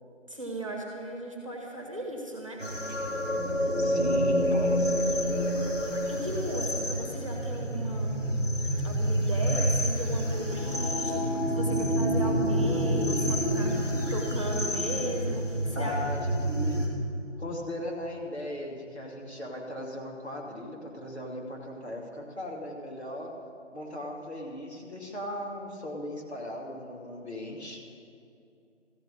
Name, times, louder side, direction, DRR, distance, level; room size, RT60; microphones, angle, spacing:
voice 1, 0.3-2.6 5.8-8.2 8.8-15.9, right 1 dB, 25° right, 0 dB, 1.5 m, -37 dB
sound 1, 2.6-16.9, equal, 75° left, 3.6 m, -28 dB
voice 2, 3.8-5.2 15.7-16.8 17.4-23.3 23.7-27.8, left 1 dB, 60° left, -1 dB, 2.7 m, -37 dB
14.5 x 9.1 x 8.5 m, 2.7 s
figure-of-eight pair, 175°, 37 cm